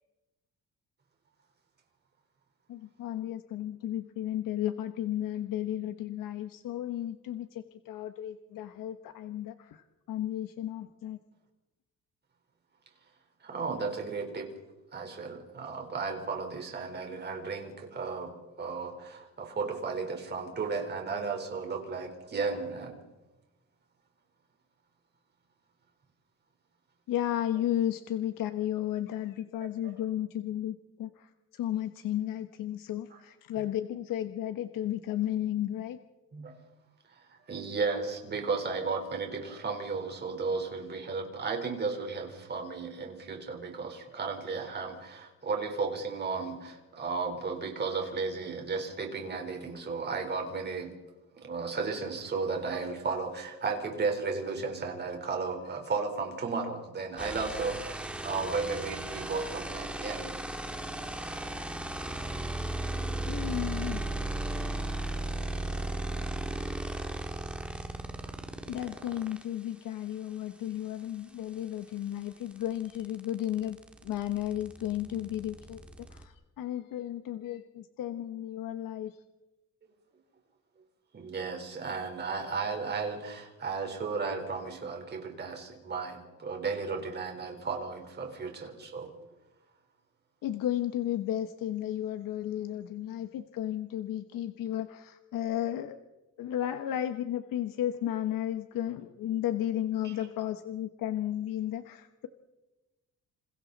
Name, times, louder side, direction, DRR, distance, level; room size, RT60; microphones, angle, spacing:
voice 1, 2.7-9.8 10.1-11.2 27.1-31.1 31.6-36.0 63.3-64.0 66.1-66.3 66.6-66.8 68.7-73.8 74.0-75.8 76.1-79.1 90.4-96.0 96.4-102.3, left 12 dB, 85° left, 8 dB, 1.2 m, -33 dB
voice 2, 13.4-14.5 14.9-18.3 18.6-23.0 29.6-29.9 33.1-33.2 33.5-33.6 36.3-36.5 37.5-50.9 51.4-60.3 81.1-89.1 100.0-100.3, right 4 dB, 30° right, 3 dB, 4.1 m, -34 dB
sound 1, 57.2-69.4 71.5-71.6 71.9-76.3, right 1 dB, 5° right, 1.7 m, -36 dB
28.5 x 28.0 x 4.1 m, 1.1 s
cardioid pair, 180°, 32 cm